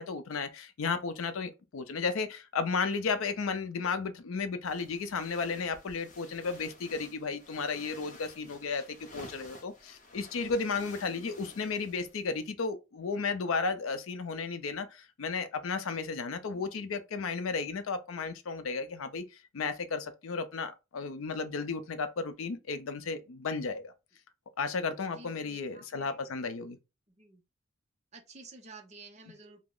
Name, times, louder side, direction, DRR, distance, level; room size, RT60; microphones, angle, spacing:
voice 1, 0.0-8.8 9.1-23.9 24.6-26.8, left 4 dB, 85° left, 0.5 m, -34 dB
sound 1, 4.6-12.5, left 2 dB, 40° left, 0.7 m, -52 dB
voice 2, 11.1-11.6 16.5-17.0 25.2-26.2 27.1-27.4 28.1-29.6, right 3 dB, 35° right, 0.6 m, -52 dB
2.8 x 2.0 x 3.7 m
head